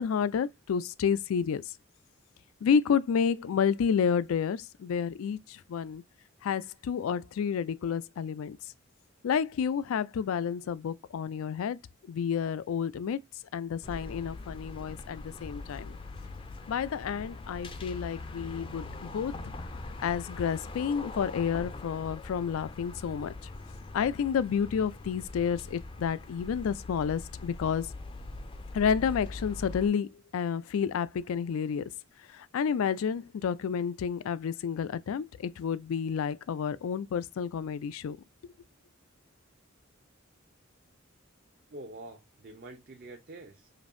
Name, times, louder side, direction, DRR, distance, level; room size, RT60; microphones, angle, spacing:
voice 1, 0.0-1.6 2.6-6.0 6.4-8.6 9.2-11.8 12.1-13.2 13.5-16.0 16.7-19.3 20.0-23.3 23.9-27.9 28.7-31.9 32.3-38.2, left 7 dB, 90° left, 0.3 m, -30 dB
sound 1, 13.8-29.9, left 2 dB, 25° left, 0.4 m, -42 dB
voice 2, 41.7-43.7, right 2 dB, 50° right, 0.6 m, -46 dB
5.1 x 2.6 x 2.5 m
head